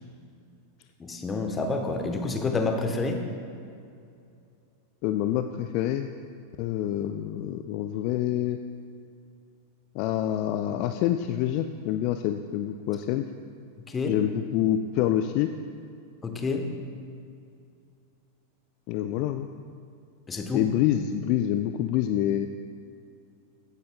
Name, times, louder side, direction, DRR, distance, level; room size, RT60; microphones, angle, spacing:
voice 1, 1.0-3.3 13.9-14.2 16.2-16.7 20.3-20.7, left 3 dB, 15° left, 4 dB, 0.9 m, -28 dB
voice 2, 5.0-6.1 6.6-8.6 9.9-13.3 14.1-15.5 18.9-19.5 20.5-22.5, left 11 dB, 45° left, 8 dB, 0.3 m, -26 dB
15.0 x 9.0 x 2.2 m, 2.4 s
figure-of-eight pair, 90°, 0 cm